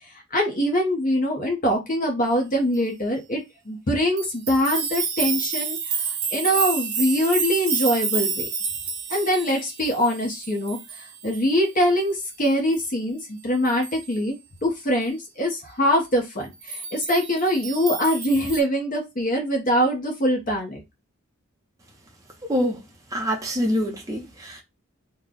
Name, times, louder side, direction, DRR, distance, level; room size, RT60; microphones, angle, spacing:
voice 1, 0.3-3.4 3.7-8.5 9.1-14.4 14.6-20.8, equal, 40° left, 1.0 m, -23 dB
sound 1, 4.2-11.5 11.8-11.9 12.3-12.4 12.7-12.8 13.2-13.3 13.6-14.2 16.6-18.6, right 6 dB, 85° right, 0.9 m, -29 dB
voice 2, 22.4-22.8 23.1-24.6, equal, 15° right, 0.7 m, -25 dB
3.2 x 2.2 x 3.8 m
head